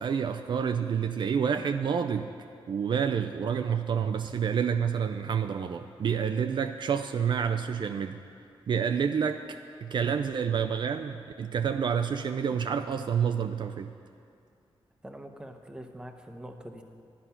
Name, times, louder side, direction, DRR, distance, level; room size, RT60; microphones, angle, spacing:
voice 1, 0.0-2.3 2.7-8.2 8.7-9.4 9.8-13.9, right 7 dB, 55° right, 8 dB, 0.4 m, -28 dB
voice 2, 15.0-16.8, equal, 10° right, 4 dB, 0.8 m, -44 dB
11.5 x 9.5 x 5.7 m, 2.4 s
wide cardioid pair, 125°, 9 cm